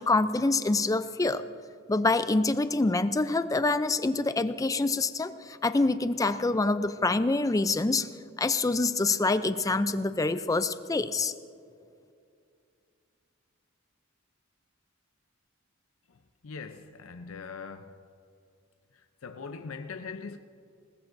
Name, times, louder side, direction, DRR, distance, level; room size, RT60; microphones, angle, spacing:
voice 1, 0.0-1.4 1.9-8.1 8.4-11.3, left 3 dB, 15° left, 0.4 m, -26 dB
voice 2, 16.1-18.1 18.9-20.4, left 5 dB, 80° left, 0.6 m, -42 dB
20.5 x 19.5 x 2.6 m
head